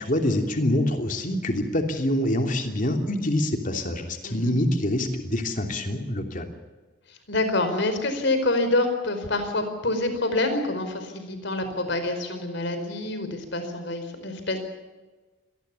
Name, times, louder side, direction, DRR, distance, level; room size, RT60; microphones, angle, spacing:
voice 1, 0.1-6.5, left 1 dB, 40° left, 5 dB, 3.0 m, -25 dB
voice 2, 7.1-14.6, left 2 dB, 60° left, 8 dB, 4.7 m, -27 dB
26.5 x 19.5 x 7.0 m, 1.3 s
head